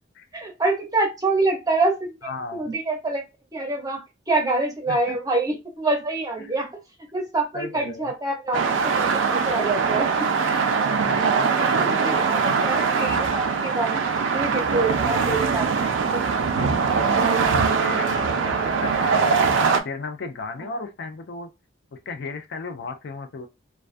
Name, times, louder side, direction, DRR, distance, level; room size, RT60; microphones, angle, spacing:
voice 1, 0.3-3.2 3.5-6.7 7.1-10.7 11.0-14.0 14.3-16.2 17.2-17.5 18.3-18.8, right 3 dB, 20° right, 0.7 m, -27 dB
voice 2, 2.2-2.8 4.9-5.2 6.4-6.7 7.5-8.1 10.8-12.5 15.1-15.8 16.4-17.3 17.8-21.5 21.9-23.5, left 3 dB, 60° left, 0.4 m, -36 dB
sound 1, 8.5-19.8, right 5 dB, 75° right, 0.4 m, -22 dB
2.3 x 2.2 x 2.5 m
head